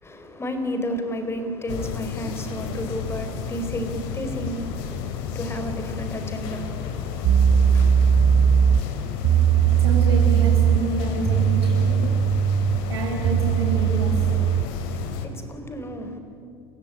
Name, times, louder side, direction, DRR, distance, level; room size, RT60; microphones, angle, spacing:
voice 1, 0.0-9.1 14.8-16.2, equal, 20° left, 4.4 m, -33 dB
sound 1, 1.7-15.3, left 7 dB, 65° left, 2.8 m, -31 dB
sound 2, 6.8-6.9 7.2-14.8, right 8 dB, 40° right, 1.1 m, -20 dB
voice 2, 9.8-12.0 12.9-14.1, right 3 dB, 85° right, 7.5 m, -28 dB
29.0 x 16.0 x 9.9 m
hypercardioid pair, 80°, 13 cm